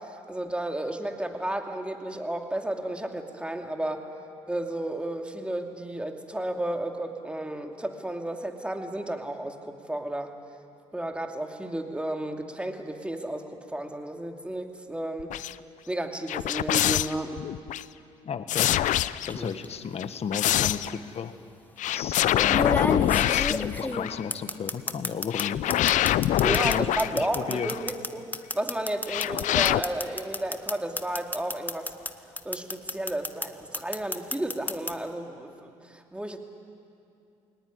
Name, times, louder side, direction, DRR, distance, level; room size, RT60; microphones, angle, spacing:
voice 1, 0.0-4.1 4.5-10.3 10.9-15.4 15.9-17.4 26.4-31.9 32.4-36.4, right 1 dB, 10° right, 4 dB, 2.6 m, -32 dB
sound 1, 15.2-15.5 16.3-17.8 18.5-19.5 20.0-21.0 21.8-24.2 25.3-27.9 29.1-29.8, left 13 dB, 65° left, 0.6 m, -25 dB
voice 2, 18.2-18.8 19.3-21.3 21.9-25.7 26.4-27.7, left 6 dB, 50° left, 10 dB, 1.5 m, -33 dB
sound 2, 19.3-19.6 20.8-20.9 22.5-25.4 25.7-32.1 32.4-33.5 33.7-34.9, left 2 dB, 15° left, 1.4 m, -30 dB
22.5 x 19.0 x 9.7 m, 2.6 s
supercardioid pair, 60°, 14 cm